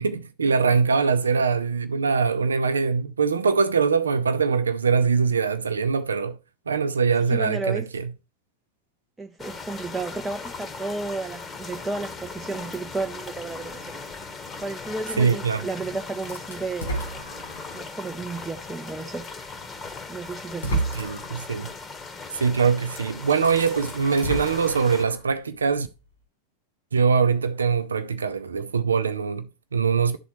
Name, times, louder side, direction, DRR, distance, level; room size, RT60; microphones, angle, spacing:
voice 1, 0.0-6.4 6.7-8.0 15.2-15.6 20.9-21.7 22.3-25.9 26.9-30.2, right 5 dB, 70° right, 0.5 m, -23 dB
voice 2, 7.3-7.9 9.2-14.0 14.6-16.9 17.7-19.2 20.1-21.0, right 3 dB, 10° right, 0.6 m, -33 dB
sound 1, 9.4-25.0, left 4 dB, 20° left, 1.1 m, -38 dB
sound 2, 16.3-17.9 18.5-18.6 19.8-19.9 20.4-21.4 22.9-23.0 23.3-25.3, right 2 dB, 70° left, 3.1 m, -31 dB
12.0 x 4.0 x 3.0 m
figure-of-eight pair, 90°, 0 cm